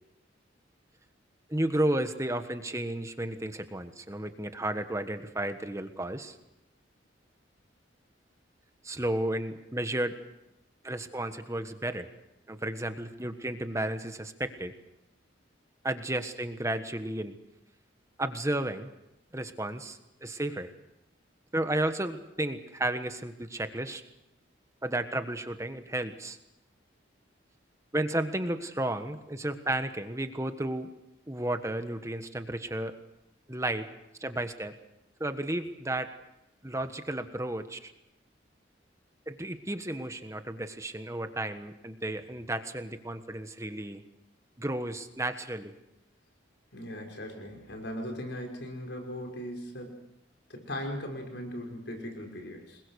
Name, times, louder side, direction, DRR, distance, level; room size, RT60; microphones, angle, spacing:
voice 1, 1.5-6.4 8.8-10.2 10.8-12.1 12.5-14.7 15.8-17.4 18.2-18.9 19.3-20.7 21.5-24.0 24.8-26.4 27.9-30.9 31.3-33.0 33.5-33.9 34.2-34.7 35.2-36.1 36.6-37.9 39.3-44.0 44.6-45.7, right 1 dB, 15° right, 8 dB, 1.4 m, -33 dB
voice 2, 46.7-50.1 50.5-52.8, equal, 65° left, 2 dB, 5.6 m, -38 dB
27.5 x 21.5 x 6.5 m, 0.85 s
head